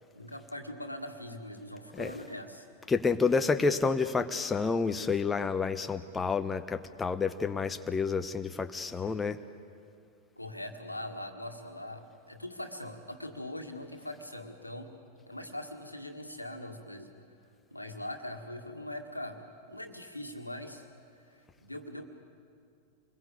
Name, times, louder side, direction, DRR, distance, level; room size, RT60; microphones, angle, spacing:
voice 1, 0.1-2.7 10.4-14.9 15.3-17.1 17.7-19.4 19.7-20.9 21.6-22.0, left 1 dB, 85° left, 5 dB, 2.0 m, -41 dB
voice 2, 2.9-9.4, left 4 dB, 15° left, 9 dB, 0.9 m, -29 dB
27.0 x 21.0 x 8.7 m, 2.4 s
figure-of-eight pair, 90°, 0 cm